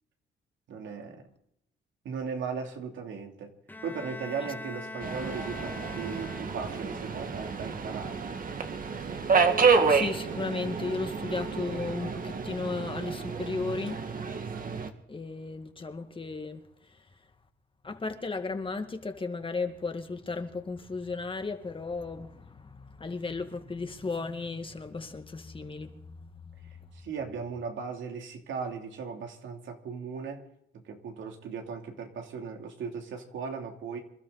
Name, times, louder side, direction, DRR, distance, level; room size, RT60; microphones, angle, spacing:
voice 1, 0.7-1.2 2.0-3.5 3.8-8.2 26.9-30.4 30.7-34.0, right 5 dB, 75° right, 3.1 m, -37 dB
Bowed string instrument, 3.7-6.9, left 2 dB, 10° left, 1.4 m, -42 dB
Subway metro underground, 5.0-14.9, right 5 dB, 45° right, 1.9 m, -29 dB
voice 2, 9.9-14.0 15.1-16.6 17.8-26.3, left 3 dB, 25° left, 2.0 m, -35 dB
27.0 x 12.5 x 4.1 m
cardioid pair, 90°, 20 cm